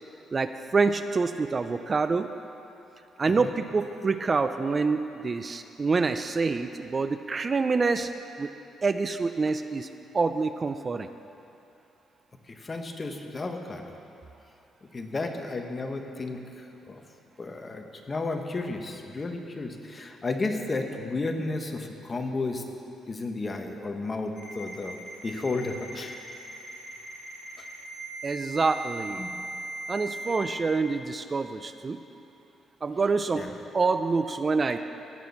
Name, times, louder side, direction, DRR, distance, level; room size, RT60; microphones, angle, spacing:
voice 1, 0.3-2.3 3.2-8.1 8.4-8.5 8.8-9.9 10.1-11.1 28.2-29.2 29.9-32.0 32.8-33.5 33.7-34.8, right 4 dB, 35° right, 10 dB, 0.4 m, -26 dB
voice 2, 12.5-13.8 14.9-17.0 17.4-22.6 23.1-25.0 25.2-26.3 27.6-27.7 29.2-29.3 33.3-33.5, left 3 dB, 30° left, 4 dB, 1.3 m, -33 dB
Ringtone, 24.4-30.4, right 2 dB, 70° left, 2.4 m, -39 dB
16.5 x 6.2 x 7.2 m, 2.9 s
cardioid pair, 90°, 0 cm